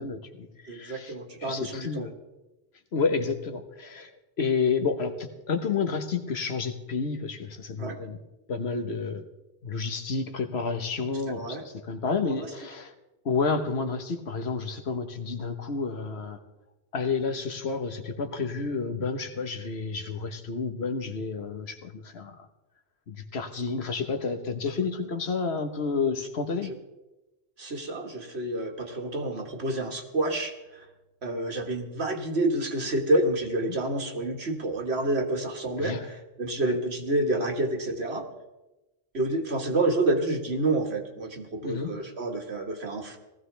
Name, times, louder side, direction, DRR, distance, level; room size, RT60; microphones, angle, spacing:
voice 1, 0.0-1.1 1.4-2.1 2.9-4.1 4.4-8.2 8.5-9.3 9.6-12.9 13.2-16.4 16.9-22.5 23.1-26.7 33.7-33.8 35.8-36.1 36.6-36.7 41.6-41.9, left 5 dB, 70° left, 8 dB, 1.4 m, -30 dB
voice 2, 0.7-2.0 7.8-8.0 11.3-11.6 12.3-12.5 27.6-30.5 31.2-38.2 39.1-43.2, right 2 dB, 70° right, 3 dB, 1.8 m, -28 dB
18.5 x 15.0 x 3.3 m, 1.0 s
omnidirectional pair, 1.1 m